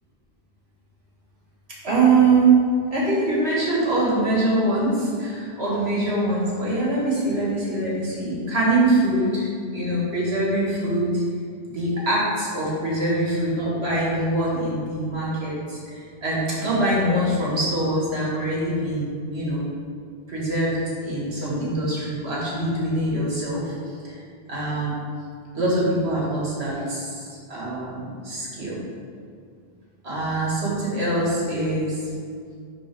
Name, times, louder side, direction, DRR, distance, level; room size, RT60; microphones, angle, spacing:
voice 1, 1.8-2.6 2.9-9.5 9.7-11.2 11.7-19.6 20.3-23.7 24.0-24.2 24.5-24.9 25.5-28.8 30.0-32.0, right 2 dB, 75° right, -6 dB, 2.0 m, -23 dB
11.0 x 3.7 x 3.4 m, 2.2 s
omnidirectional pair, 1.1 m